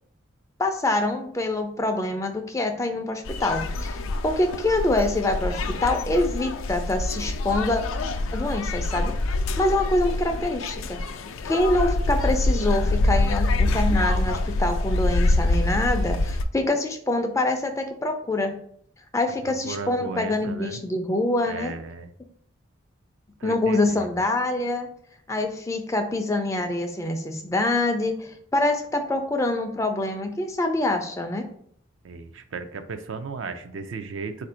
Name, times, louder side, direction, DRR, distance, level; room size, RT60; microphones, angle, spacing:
voice 1, 0.6-7.8 8.3-9.1 9.6-18.5 19.1-21.7 23.4-24.9 25.3-31.5, left 2 dB, 15° left, 5 dB, 0.4 m, -25 dB
sound 1, 3.2-16.4, left 2 dB, 80° left, 0.4 m, -25 dB
voice 2, 19.4-20.8 21.4-22.1 23.4-24.2 32.0-34.5, right 4 dB, 65° right, 8 dB, 0.4 m, -35 dB
4.1 x 2.5 x 4.2 m, 0.64 s
head